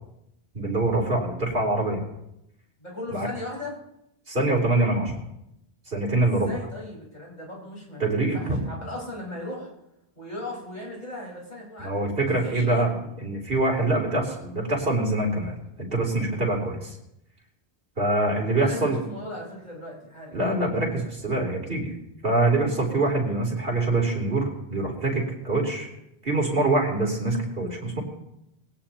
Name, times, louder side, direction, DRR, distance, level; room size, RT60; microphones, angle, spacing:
voice 1, 0.5-2.0 3.1-3.3 4.3-5.1 5.9-6.5 8.0-8.6 11.8-12.9 13.2-17.0 18.0-19.0 20.3-21.9 22.2-25.9 26.2-28.0, right 2 dB, 60° right, -2 dB, 3.6 m, -24 dB
voice 2, 2.8-3.7 6.2-9.7 10.2-13.1 18.5-20.4 20.9-21.0, left 1 dB, 45° left, -4 dB, 5.1 m, -37 dB
21.0 x 17.5 x 2.9 m, 0.82 s
omnidirectional pair, 1.1 m